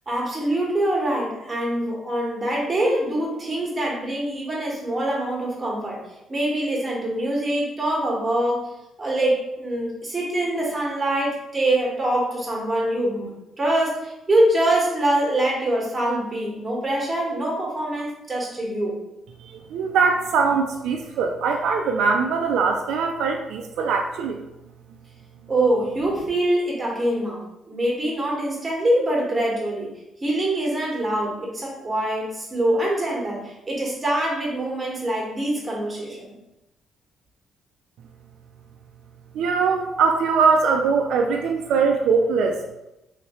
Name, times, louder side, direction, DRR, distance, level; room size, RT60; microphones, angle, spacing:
voice 1, 0.1-6.0 6.3-8.6 9.0-19.0 25.5-29.9 30.2-36.3, right 1 dB, 20° right, -3 dB, 1.3 m, -24 dB
voice 2, 19.4-24.4 39.3-42.7, right 5 dB, 85° right, 3 dB, 0.3 m, -22 dB
3.1 x 2.9 x 3.0 m, 0.92 s
cardioid pair, 90°, 0 cm